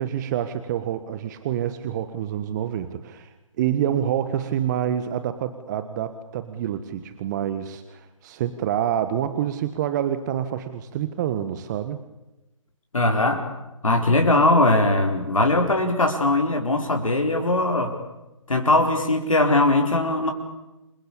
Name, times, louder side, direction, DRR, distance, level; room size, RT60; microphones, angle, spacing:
voice 1, 0.0-12.0 13.9-14.0, right 10 dB, 35° right, 11 dB, 1.5 m, -27 dB
voice 2, 12.9-13.5 13.8-18.0 18.5-20.3, left 2 dB, 80° left, 3 dB, 4.3 m, -20 dB
28.5 x 22.5 x 8.6 m, 1.0 s
figure-of-eight pair, 135°, 17 cm